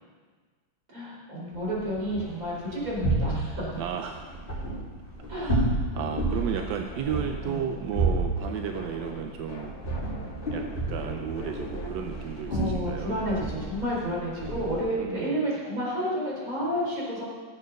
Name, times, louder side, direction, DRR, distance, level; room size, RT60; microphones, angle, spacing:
voice 1, 0.9-3.7 5.3-5.5 6.3-6.4 7.4-7.6 12.5-17.2, equal, 40° right, -5 dB, 4.7 m, -30 dB
sound 1, 1.5-14.8, right 2 dB, 25° left, 4.3 m, -32 dB
voice 2, 3.8-4.4 5.4-9.8 10.5-13.2 15.0-15.5, right 8 dB, 70° right, 5 dB, 1.2 m, -34 dB
sound 2, 5.9-13.4, left 2 dB, 50° left, 2.5 m, -44 dB
15.5 x 7.6 x 6.4 m, 1.5 s
omnidirectional pair, 2.2 m